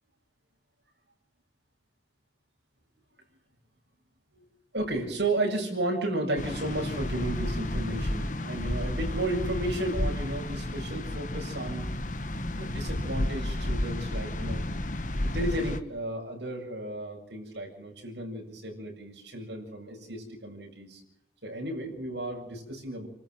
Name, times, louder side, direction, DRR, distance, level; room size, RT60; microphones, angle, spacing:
voice 1, 4.7-11.9 12.5-14.6 15.2-21.0 21.4-23.1, right 1 dB, 75° right, 1 dB, 7.5 m, -33 dB
sound 1, 6.4-15.8, left 1 dB, 45° left, 1.3 m, -32 dB
29.5 x 13.5 x 7.7 m, 0.79 s
head